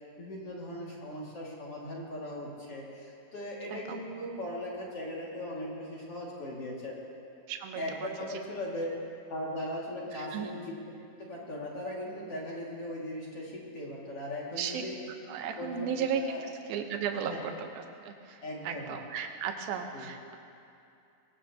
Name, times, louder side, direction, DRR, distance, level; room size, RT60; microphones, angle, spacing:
voice 1, 0.2-7.0 7.8-8.9 9.3-10.7 11.2-15.0 15.6-16.4 17.2-17.4 18.4-19.0 19.9-20.1, left 1 dB, 45° left, -4 dB, 2.7 m, -38 dB
voice 2, 3.7-4.0 7.5-8.4 10.1-10.5 14.6-14.9 15.3-17.5 18.0-20.4, right 7 dB, 75° right, 5 dB, 2.7 m, -35 dB
22.0 x 19.0 x 2.9 m, 2.6 s
omnidirectional pair, 4.4 m